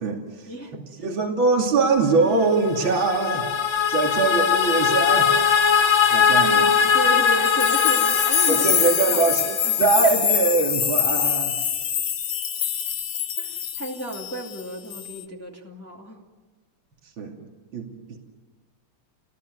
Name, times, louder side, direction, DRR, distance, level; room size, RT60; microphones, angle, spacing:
voice 1, 0.0-3.5 3.9-5.3 6.1-6.8 8.5-11.6 17.2-17.4 17.7-18.2, right 4 dB, 65° right, 1 dB, 3.2 m, -23 dB
sound 1, 2.5-9.6, left 7 dB, 40° left, 1.5 m, -21 dB
voice 2, 6.8-8.7 9.1-9.3 9.6-9.9 13.4-16.2, right 1 dB, 5° left, -1 dB, 2.5 m, -32 dB
sound 2, 7.3-14.6 14.9-15.2, left 9 dB, 60° left, 1.7 m, -24 dB
29.5 x 19.5 x 9.5 m, 1.3 s
omnidirectional pair, 2.3 m